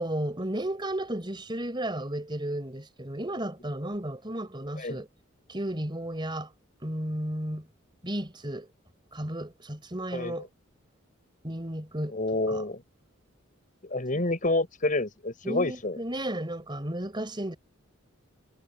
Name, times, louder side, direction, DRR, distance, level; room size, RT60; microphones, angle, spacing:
voice 1, 0.0-5.1 5.5-6.5 6.8-7.7 8.0-8.7 9.1-10.5 11.4-12.2 12.5-12.6 14.1-14.2 15.4-17.6, right 1 dB, 25° right, 4.0 m, -33 dB
voice 2, 12.1-12.8 13.9-16.0, left 2 dB, 40° left, 5.8 m, -28 dB
head